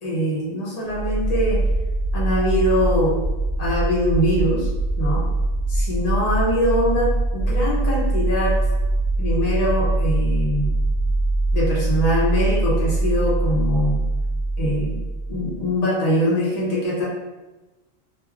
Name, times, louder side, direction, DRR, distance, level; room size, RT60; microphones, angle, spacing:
voice 1, 0.0-1.6 2.1-3.2 3.6-4.7 5.0-5.2 5.7-7.1 7.3-8.5 9.2-10.7 11.5-14.0 14.6-15.0 15.3-17.1, equal, 40° left, -7 dB, 0.9 m, -22 dB
sound 1, 0.9-15.6, right 2 dB, 80° left, 0.8 m, -23 dB
2.9 x 2.7 x 2.4 m, 1.1 s
omnidirectional pair, 1.1 m